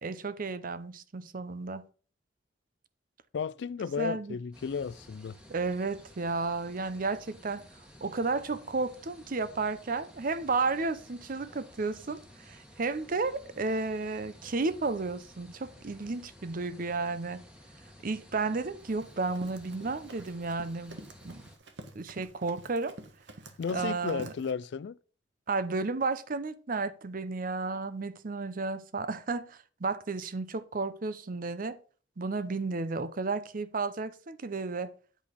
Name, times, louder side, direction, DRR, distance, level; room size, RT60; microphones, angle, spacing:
voice 1, 0.0-1.8 4.0-4.4 5.5-7.6 8.0-17.4 18.0-21.0 21.2-21.4 21.9-22.9 23.7-24.3 25.5-31.8 32.2-34.9, right 3 dB, 50° right, 0.7 m, -33 dB
voice 2, 3.3-5.4 23.6-25.0, left 6 dB, 65° left, 0.4 m, -34 dB
sound 1, 4.5-21.6, equal, 5° right, 1.4 m, -54 dB
Run, 18.8-24.5, right 2 dB, 80° right, 1.3 m, -49 dB
8.6 x 5.0 x 5.1 m
head